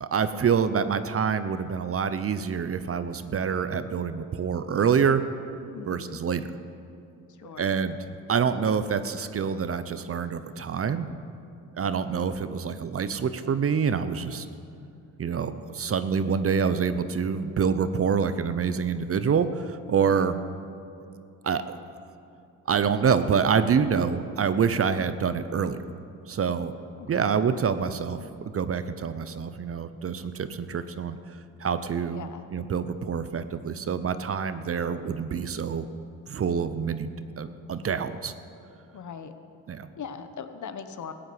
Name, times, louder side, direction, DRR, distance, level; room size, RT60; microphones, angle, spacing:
voice 1, 0.0-5.2 5.8-6.5 7.6-8.0 8.3-11.1 11.8-14.5 15.2-20.3 21.4-21.6 22.7-25.8 26.3-26.8 27.1-28.3 28.5-32.2 32.5-35.9 36.3-37.1 37.4-38.3 39.7-39.9, right 6 dB, 35° right, 12 dB, 0.8 m, -26 dB
voice 2, 5.7-6.2 7.3-7.7 20.1-20.3 27.0-27.3 32.1-32.4 38.9-39.3 40.0-41.1, left 7 dB, 50° left, 9 dB, 1.2 m, -40 dB
15.5 x 8.6 x 8.0 m, 2.6 s
cardioid pair, 80°, 37 cm